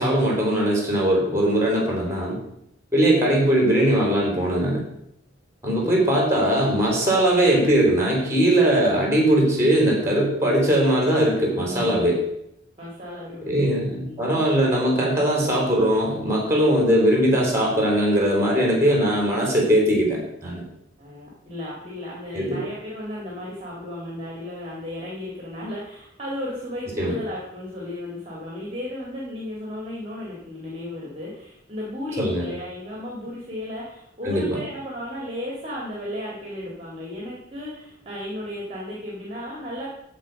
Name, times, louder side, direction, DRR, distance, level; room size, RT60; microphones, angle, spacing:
voice 1, 0.0-2.4 2.9-4.8 5.6-12.2 13.4-20.6 22.3-22.6 27.0-27.1 32.2-32.4 34.2-34.6, right 1 dB, 15° right, -1 dB, 3.4 m, -20 dB
voice 2, 5.8-6.1 11.6-12.2 12.8-14.4 21.0-39.9, left 1 dB, 30° right, -4 dB, 2.1 m, -35 dB
14.0 x 4.6 x 5.2 m, 0.79 s
head